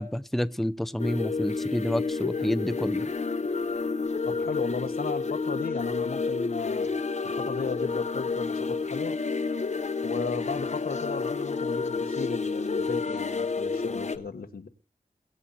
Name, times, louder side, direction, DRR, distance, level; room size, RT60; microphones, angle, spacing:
voice 1, 0.0-3.1, left 1 dB, ahead, 0.5 m, -29 dB
sound 1, 1.0-14.2, left 4 dB, 50° left, 0.8 m, -30 dB
voice 2, 4.2-6.9 7.2-9.2 10.0-14.7, left 4 dB, 90° left, 1.3 m, -35 dB
23.0 x 7.7 x 4.2 m
wide cardioid pair, 90°, 15 cm